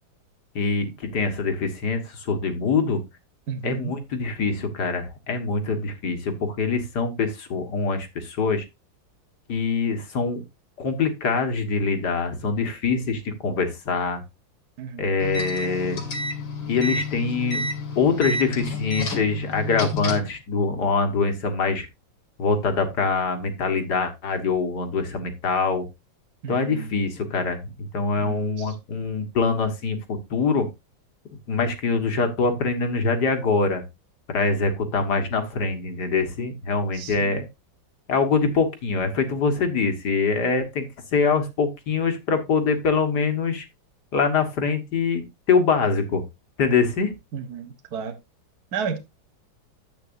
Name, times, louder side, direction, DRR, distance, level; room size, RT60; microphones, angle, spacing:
voice 1, 0.6-3.0 3.6-8.6 9.5-10.4 10.8-14.2 15.0-16.0 16.7-17.6 18.0-21.9 22.4-25.9 26.5-30.7 31.5-33.8 34.3-37.5 38.1-40.9 41.1-43.7 44.1-46.2 46.6-47.1, left 4 dB, 60° left, 2.0 m, -24 dB
voice 2, 3.5-3.9 14.8-15.1 26.4-26.9 28.2-28.7 36.9-37.4 47.3-48.1 48.7-49.0, right 6 dB, 55° right, 1.7 m, -33 dB
sound 1, 15.2-20.4, left 2 dB, 75° left, 2.5 m, -30 dB
10.5 x 8.3 x 2.6 m
omnidirectional pair, 2.1 m